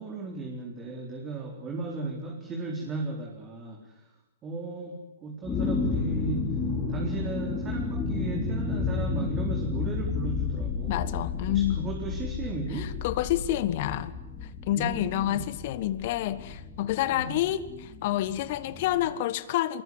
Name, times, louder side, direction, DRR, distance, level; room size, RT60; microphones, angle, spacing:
voice 1, 0.0-4.1 4.4-6.6 6.9-11.1 11.5-13.0 14.7-15.5 17.1-17.4, right 3 dB, 25° right, 4.0 m, -36 dB
sound 1, 5.4-19.1, left 4 dB, 20° left, 4.4 m, -32 dB
voice 2, 10.8-11.9 12.7-14.2 14.7-19.8, left 13 dB, 50° left, 1.4 m, -28 dB
24.5 x 21.0 x 9.7 m
figure-of-eight pair, 115°, 0 cm